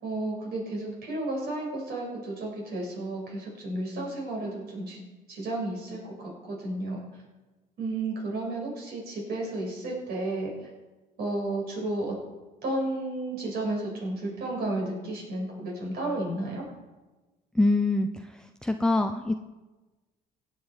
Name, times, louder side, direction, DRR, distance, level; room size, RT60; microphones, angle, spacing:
voice 1, 0.0-5.0 5.3-7.0 7.8-10.5 11.2-12.2 12.6-16.6, right 2 dB, 65° right, -1 dB, 6.0 m, -32 dB
voice 2, 17.5-18.1 18.6-19.3, left 2 dB, 5° left, 5 dB, 0.6 m, -23 dB
17.0 x 10.0 x 4.8 m, 1.2 s
cardioid pair, 110°, 17 cm